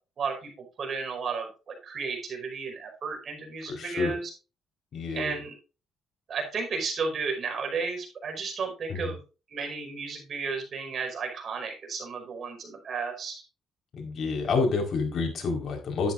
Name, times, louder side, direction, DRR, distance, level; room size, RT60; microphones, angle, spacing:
voice 1, 0.2-4.3 5.1-5.5 6.3-9.2 9.5-13.4, right 5 dB, 55° right, 3 dB, 5.1 m, -33 dB
voice 2, 3.7-4.1 4.9-5.4 8.9-9.1 13.9-16.1, left 4 dB, 55° left, 2 dB, 4.5 m, -29 dB
12.0 x 10.0 x 2.6 m, 0.32 s
cardioid pair, 90°, 0 cm